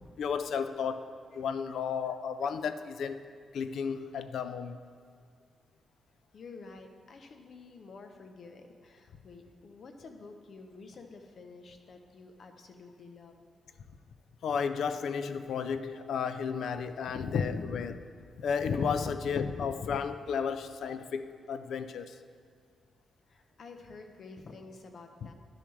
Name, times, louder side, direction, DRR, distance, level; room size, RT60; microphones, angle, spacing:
voice 1, 0.2-3.2 3.5-4.8 14.4-18.0 18.4-22.2, left 6 dB, 75° left, 10 dB, 0.4 m, -33 dB
voice 2, 6.3-13.5 23.3-25.3, left 3 dB, 55° left, 5 dB, 0.7 m, -50 dB
11.0 x 7.0 x 3.2 m, 2.2 s
wide cardioid pair, 135°, 0 cm